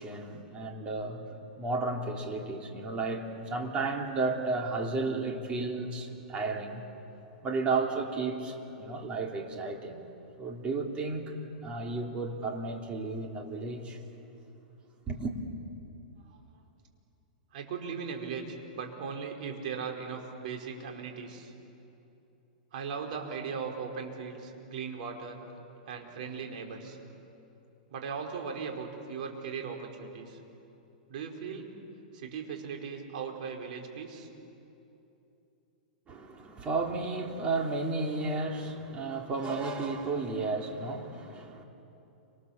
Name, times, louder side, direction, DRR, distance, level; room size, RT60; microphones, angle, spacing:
voice 1, 0.0-6.8 7.4-10.0 10.4-11.4 11.6-14.0 15.1-15.4 36.1-41.6, right 3 dB, 25° right, 2 dB, 3.1 m, -33 dB
voice 2, 17.5-21.5 22.7-25.4 25.9-27.0 27.9-30.4 31.1-31.7 32.1-34.3, right 6 dB, 60° right, 2 dB, 4.7 m, -38 dB
30.0 x 26.0 x 7.3 m, 2.9 s
hypercardioid pair, 140°, 5 cm